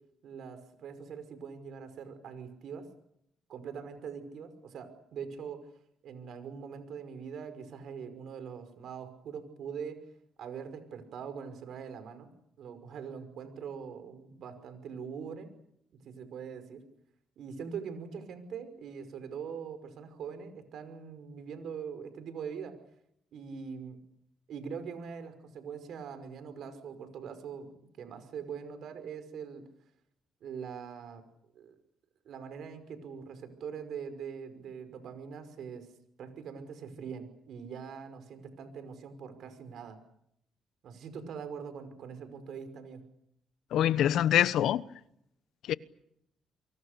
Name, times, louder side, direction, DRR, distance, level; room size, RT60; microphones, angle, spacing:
voice 1, 0.2-2.9 3.5-5.6 6.0-10.0 10.4-12.3 12.6-15.5 16.0-16.8 17.4-22.7 23.3-24.0 24.5-29.6 30.4-31.2 31.6-31.7 32.3-35.9 36.2-40.0 40.8-43.0, right 6 dB, 70° right, 5.6 m, -42 dB
voice 2, 43.7-44.8 45.7-45.8, left 11 dB, 80° left, 1.0 m, -24 dB
29.5 x 24.0 x 6.8 m
cardioid pair, 90°, 0 cm